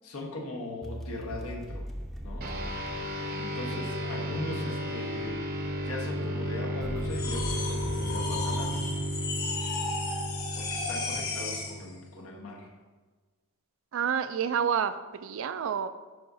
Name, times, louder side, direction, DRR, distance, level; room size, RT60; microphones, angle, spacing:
voice 1, 0.0-1.9 2.2-2.5 3.1-8.8 10.5-12.7, left 1 dB, 85° left, 0 dB, 1.2 m, -40 dB
sound 1, 0.8-3.8 6.8-10.2, equal, ahead, 0.6 m, -40 dB
sound 2, 2.4-12.2, equal, 45° right, 0.8 m, -33 dB
sound 3, 7.1-11.8, left 3 dB, 45° left, 1.2 m, -34 dB
voice 2, 13.9-15.9, right 7 dB, 60° right, 12 dB, 0.4 m, -29 dB
11.0 x 4.8 x 2.7 m, 1.4 s
head